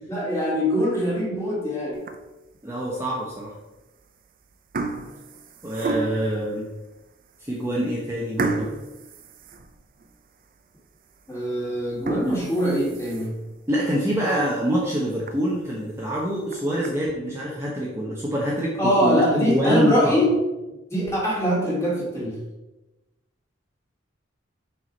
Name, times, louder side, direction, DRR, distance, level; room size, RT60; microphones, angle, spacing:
voice 1, 0.1-2.0 11.3-13.4 18.8-20.3 20.9-22.4, equal, 15° left, -6 dB, 2.7 m, -23 dB
sound 1, 1.9-2.5 3.0-3.2 4.0-4.3 4.5-6.4 7.0-7.1 7.5-7.6 8.4-10.1 10.6-10.7 11.1-11.2 11.9-13.5 13.9-14.0 14.4-14.5 14.9-15.0 15.3-15.4 16.3-16.9, right 3 dB, 45° right, 0.6 m, -31 dB
voice 2, 2.6-3.5 5.6-6.7 7.5-8.7 12.2-12.4 13.7-20.2, equal, 15° right, -5 dB, 1.1 m, -25 dB
6.3 x 4.8 x 5.4 m, 1.0 s
head